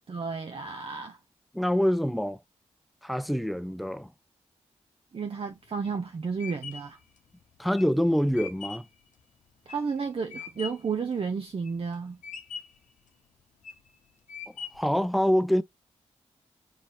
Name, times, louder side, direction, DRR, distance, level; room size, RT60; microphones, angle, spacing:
voice 1, 0.1-1.2 5.1-7.0 9.7-12.2, right 5 dB, 45° right, 0.6 m, -32 dB
voice 2, 1.5-2.4 3.0-4.1 7.6-8.9 14.7-15.6, equal, ahead, 0.5 m, -25 dB
sound 1, 5.5-11.0 11.4-11.9 12.2-12.9 13.4-13.9 14.3-15.0, left 6 dB, 85° left, 0.7 m, -42 dB
3.9 x 2.8 x 3.0 m
supercardioid pair, 40°, 13 cm